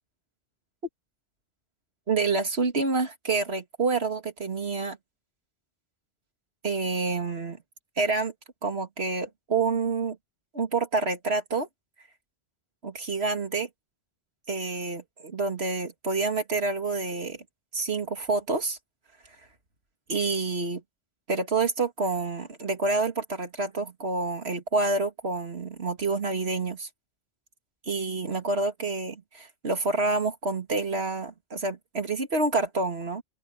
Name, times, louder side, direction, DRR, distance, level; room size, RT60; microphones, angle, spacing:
voice 1, 2.1-5.0 6.6-7.6 8.0-8.3 8.6-10.2 10.5-11.7 12.8-13.7 14.5-17.4 17.7-18.8 20.1-20.8 21.3-26.9 27.9-33.2, right 3 dB, 75° right, 2.6 m, -28 dB
open air
omnidirectional pair, 1.1 m